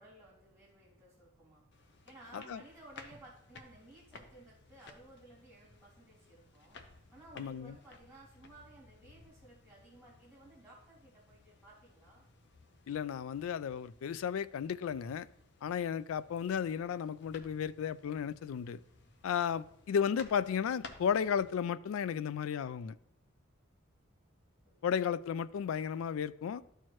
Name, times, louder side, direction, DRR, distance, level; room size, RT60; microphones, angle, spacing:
voice 1, 0.0-1.6 2.1-12.2 24.6-24.9, right 2 dB, ahead, 2.4 m, -57 dB
sound 1, 1.7-21.6, left 4 dB, 55° left, 0.7 m, -58 dB
voice 2, 7.4-7.7 12.9-15.3 15.6-18.8 19.2-23.0 24.8-26.6, left 7 dB, 80° left, 0.3 m, -34 dB
12.5 x 4.5 x 3.0 m
head